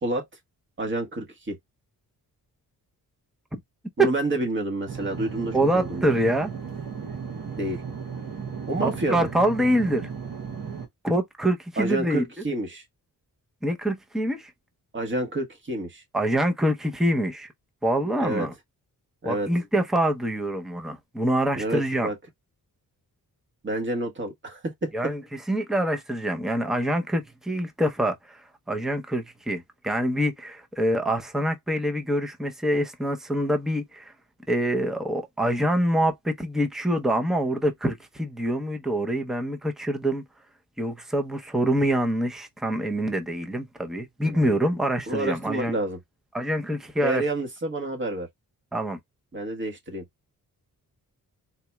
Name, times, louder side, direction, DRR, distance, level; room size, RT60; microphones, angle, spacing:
voice 1, 0.8-1.6 4.0-6.1 7.5-7.8 8.7-9.3 11.8-12.8 14.9-16.0 18.2-18.5 19.2-19.5 21.6-22.1 23.6-25.1 44.2-44.6 45.1-46.0 47.0-48.3 49.3-50.0, right 1 dB, 35° right, 1.4 m, -29 dB
sound 1, 4.9-10.9, right 6 dB, 70° right, 1.1 m, -35 dB
voice 2, 5.5-6.5 8.8-10.1 11.0-12.2 13.6-14.5 16.1-17.5 17.8-18.5 19.2-22.1 24.9-34.1 34.5-40.2 40.8-45.7 46.3-47.3 48.7-49.0, right 1 dB, ahead, 0.6 m, -25 dB
4.0 x 2.9 x 2.2 m
wide cardioid pair, 135°, 36 cm